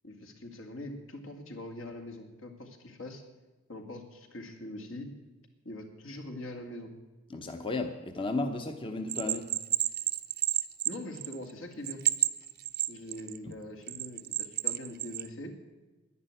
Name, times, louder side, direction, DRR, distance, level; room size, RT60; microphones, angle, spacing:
voice 1, 0.0-3.2 3.7-5.1 5.6-6.9 9.2-9.4 10.8-12.0 12.9-15.5, left 1 dB, 70° left, 3 dB, 2.3 m, -43 dB
voice 2, 7.3-9.4 13.5-13.6, left 2 dB, 25° left, 5 dB, 0.8 m, -34 dB
Bell, 9.1-11.5 11.8-13.4 13.9-15.3, right 15 dB, 50° right, 0.6 m, -30 dB
11.0 x 10.5 x 9.0 m, 1.2 s
head